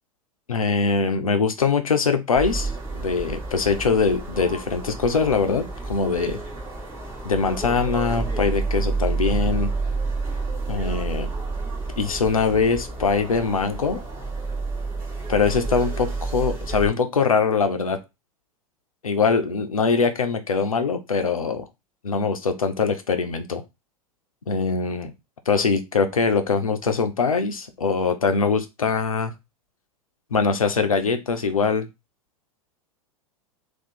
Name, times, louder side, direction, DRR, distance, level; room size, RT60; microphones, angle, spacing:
voice 1, 0.5-6.4 7.2-9.7 10.7-11.3 12.0-14.0 15.3-18.0 19.0-21.6 22.0-23.6 24.5-25.1 25.5-29.3 30.3-31.9, left 5 dB, 75° left, 8 dB, 0.7 m, -22 dB
sound 1, 2.3-16.9, right 3 dB, 15° right, 2.1 m, -29 dB
3.7 x 2.5 x 4.2 m, 0.24 s
figure-of-eight pair, 90°, 18 cm